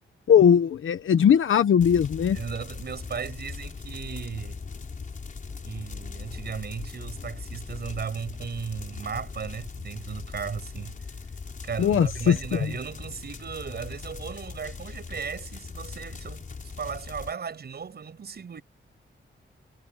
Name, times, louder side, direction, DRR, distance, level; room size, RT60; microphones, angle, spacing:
voice 1, 0.3-2.4 11.8-12.7, left 8 dB, 85° left, 1.1 m, -20 dB
sound 1, 1.8-17.3, left 5 dB, 40° left, 4.7 m, -39 dB
voice 2, 2.3-4.6 5.6-11.0 11.6-16.4 16.8-18.6, right 6 dB, 55° right, 7.5 m, -36 dB
wide cardioid pair, 165°, 20 cm